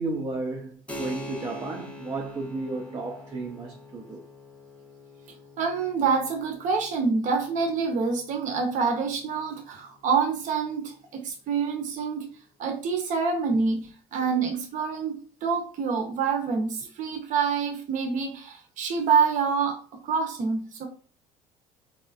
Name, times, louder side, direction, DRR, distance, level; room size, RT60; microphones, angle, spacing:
voice 1, 0.0-4.3, right 3 dB, 25° right, 0.5 m, -33 dB
Keyboard (musical), 0.9-11.1, left 1 dB, 5° left, 0.7 m, -45 dB
voice 2, 5.6-12.3 12.6-20.9, right 5 dB, 55° right, 0.8 m, -27 dB
3.5 x 2.4 x 2.4 m
supercardioid pair, 90°, 16 cm